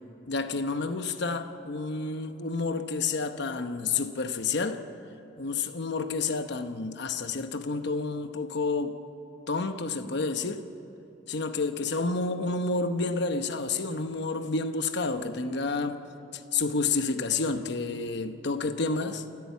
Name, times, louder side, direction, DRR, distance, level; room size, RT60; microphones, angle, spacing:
voice 1, 0.3-4.8 5.4-9.0 9.5-10.7 11.3-16.0 16.3-19.2, left 3 dB, 65° left, 0.9 m, -30 dB
28.5 x 14.5 x 8.3 m
head